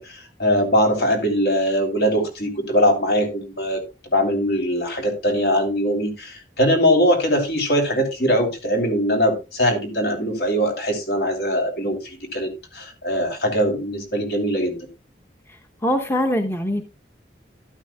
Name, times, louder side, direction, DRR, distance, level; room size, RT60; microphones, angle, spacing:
voice 1, 0.0-3.8 4.1-14.8, equal, 65° left, 3.4 m, -21 dB
voice 2, 15.5-16.8, left 1 dB, 15° left, 0.9 m, -23 dB
12.0 x 12.0 x 2.3 m
head